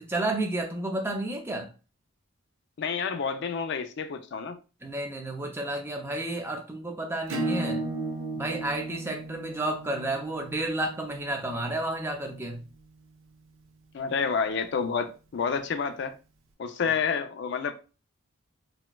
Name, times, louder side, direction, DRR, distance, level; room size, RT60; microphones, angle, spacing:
voice 1, 0.0-1.7 4.8-7.9 8.3-12.6, right 1 dB, 10° right, 0.4 m, -31 dB
voice 2, 2.8-4.6 13.9-16.1 16.6-17.7, left 6 dB, 55° left, 0.3 m, -29 dB
Acoustic guitar / Strum, 7.3-12.5, right 2 dB, 75° right, 0.6 m, -35 dB
4.0 x 2.2 x 2.2 m
head